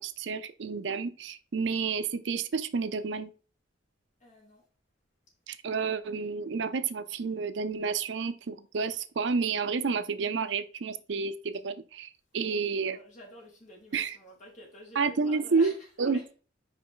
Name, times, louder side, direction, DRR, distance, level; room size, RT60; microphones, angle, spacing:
voice 1, 0.0-3.3 5.5-13.0 13.9-14.2 15.0-15.7 16.0-16.2, right 5 dB, 65° right, 0.5 m, -30 dB
voice 2, 4.2-4.6 12.5-16.3, left 1 dB, 40° left, 2.6 m, -49 dB
5.4 x 4.9 x 3.8 m
head